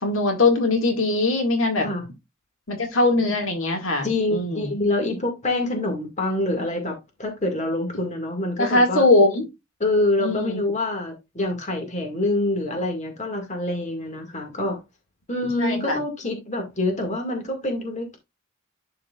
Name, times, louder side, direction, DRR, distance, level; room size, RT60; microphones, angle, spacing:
voice 1, 0.0-1.9 2.7-4.7 8.6-9.4 10.2-10.6 15.6-16.0, left 2 dB, 80° left, 2.0 m, -21 dB
voice 2, 4.0-9.0 9.8-14.8 15.3-18.2, left 2 dB, 35° left, 2.0 m, -26 dB
11.0 x 4.7 x 2.4 m
head